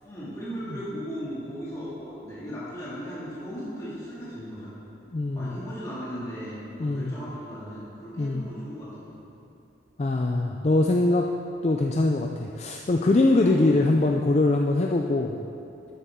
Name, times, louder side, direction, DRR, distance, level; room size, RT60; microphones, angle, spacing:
voice 1, 0.0-4.8 5.3-9.2 13.4-13.7, equal, 15° left, -10 dB, 2.3 m, -37 dB
voice 2, 5.1-5.6 6.8-7.2 8.2-8.5 10.0-11.3 11.6-15.4, left 2 dB, 35° left, 1 dB, 0.4 m, -23 dB
12.5 x 8.4 x 3.7 m, 2.7 s
head